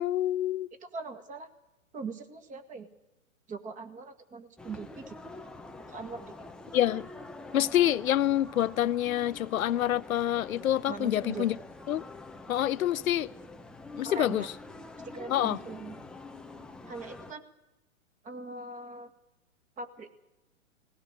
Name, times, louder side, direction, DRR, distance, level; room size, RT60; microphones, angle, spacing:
voice 1, 0.0-0.7 6.7-7.1 7.5-11.6 11.9-12.0 12.5-13.3 14.0-14.5 15.3-15.6, left 12 dB, 80° left, 0.7 m, -27 dB
voice 2, 0.8-1.5 1.9-2.9 3.5-5.2 5.9-6.5 10.9-11.6 14.0-14.5 15.1-16.0 16.9-17.4 18.2-19.1 19.8-20.1, right 4 dB, 20° right, 1.9 m, -41 dB
sound 1, 4.6-17.3, left 2 dB, ahead, 0.7 m, -46 dB
18.5 x 18.0 x 8.0 m
hypercardioid pair, 135°, 41 cm